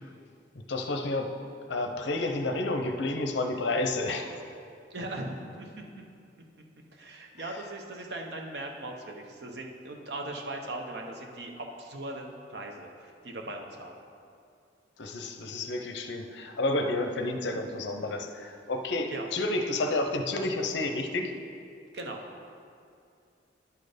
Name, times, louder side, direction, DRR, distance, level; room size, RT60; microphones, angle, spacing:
voice 1, 0.7-1.3 1.7-4.4 7.4-7.6 15.0-21.3, left 2 dB, 70° left, 6 dB, 0.6 m, -30 dB
voice 2, 4.9-5.8 6.9-13.9 19.0-19.3 21.9-22.2, right 2 dB, 65° right, 2 dB, 0.8 m, -39 dB
10.5 x 4.3 x 5.0 m, 2.4 s
head